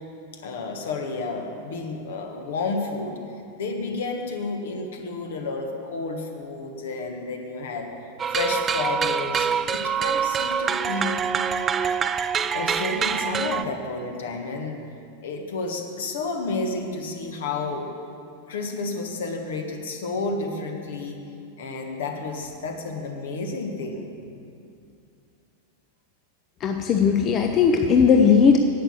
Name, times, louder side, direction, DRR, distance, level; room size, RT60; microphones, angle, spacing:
voice 1, 0.3-3.2 3.5-7.9 8.3-11.2 12.5-14.8 15.2-17.9 18.5-21.2 21.6-24.1, left 3 dB, 60° left, 4 dB, 1.4 m, -31 dB
sound 1, 8.2-13.6, right 7 dB, 20° right, 0.4 m, -25 dB
voice 2, 26.6-28.6, left 6 dB, 30° left, 4 dB, 0.7 m, -17 dB
11.0 x 8.9 x 7.5 m, 2.5 s
figure-of-eight pair, 90°, 0 cm